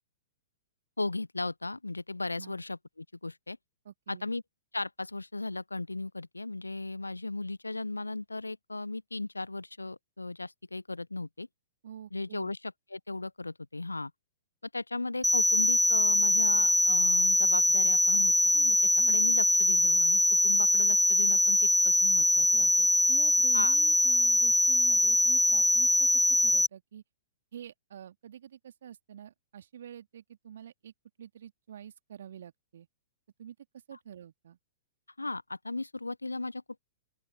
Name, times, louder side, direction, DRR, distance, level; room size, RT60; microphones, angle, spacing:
voice 1, 1.0-3.6 4.1-4.4 4.7-11.5 12.1-14.1 14.7-22.9 23.5-23.8 33.9-34.0 35.2-36.8, left 2 dB, 80° left, 0.9 m, -36 dB
voice 2, 3.8-4.3 11.8-12.6 19.0-19.1 22.5-22.7 23.1-27.0 27.5-30.9 31.2-32.9 33.4-33.5 33.9-34.6, right 9 dB, 60° right, 2.7 m, -47 dB
sound 1, 15.2-26.7, left 1 dB, ahead, 0.3 m, -23 dB
open air
figure-of-eight pair, 105°, 0 cm